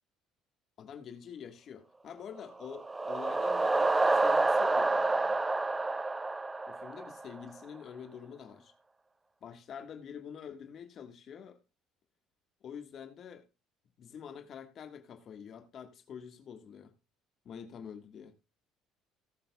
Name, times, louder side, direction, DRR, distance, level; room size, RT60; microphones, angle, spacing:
voice 1, 0.8-5.4 6.7-8.7 9.4-11.6 12.6-13.4 14.0-16.9 17.4-18.3, left 7 dB, 50° left, 1.5 m, -46 dB
sound 1, 2.5-7.4, right 2 dB, 15° right, 0.7 m, -28 dB
18.5 x 7.6 x 2.3 m
cardioid pair, 105°, 0 cm